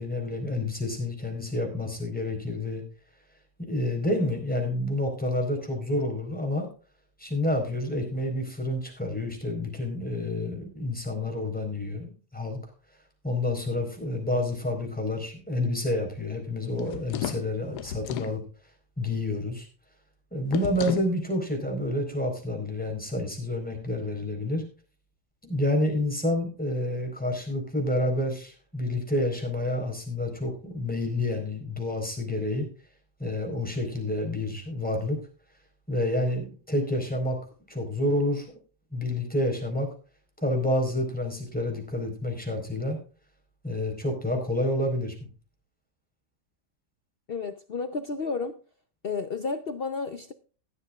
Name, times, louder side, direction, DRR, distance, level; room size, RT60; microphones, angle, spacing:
voice 1, 0.0-2.8 3.6-6.7 7.2-12.6 13.2-18.4 19.0-19.7 20.3-24.6 25.4-32.7 33.2-35.2 35.9-37.4 37.7-38.6 38.9-39.9 40.4-43.0 43.6-45.1, left 1 dB, 5° left, 4.4 m, -29 dB
sound 1, 16.7-18.4 20.5-21.1, left 11 dB, 75° left, 1.2 m, -34 dB
voice 2, 47.3-48.6 49.0-50.3, left 4 dB, 50° left, 0.7 m, -32 dB
16.0 x 12.5 x 2.4 m
omnidirectional pair, 1.8 m